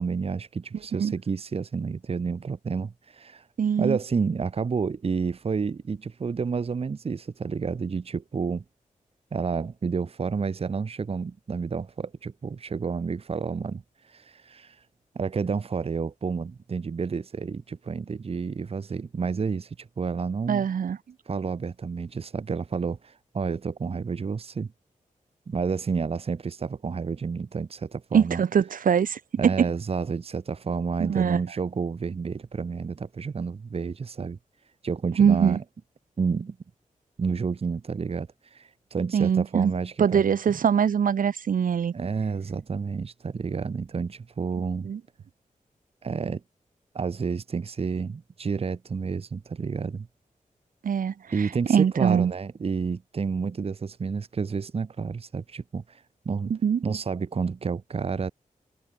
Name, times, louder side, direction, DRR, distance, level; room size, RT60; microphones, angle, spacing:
voice 1, 0.0-3.4 3.8-8.6 9.3-13.8 14.1-14.8 15.1-20.7 21.3-24.7 25.5-28.4 29.4-34.4 34.8-35.6 36.2-36.6 37.2-40.6 41.9-44.9 46.0-46.4 46.9-50.1 51.3-56.5 56.8-58.3, right 5 dB, 45° right, 0.8 m, -30 dB
voice 2, 3.6-4.0 20.5-21.0 28.1-29.2 29.6-29.7 31.0-31.4 35.2-35.6 39.1-39.7 40.0-41.9 44.8-45.0 50.8-52.3 56.5-56.8, right 7 dB, 80° right, 0.9 m, -23 dB
wide cardioid pair, 105°, 14 cm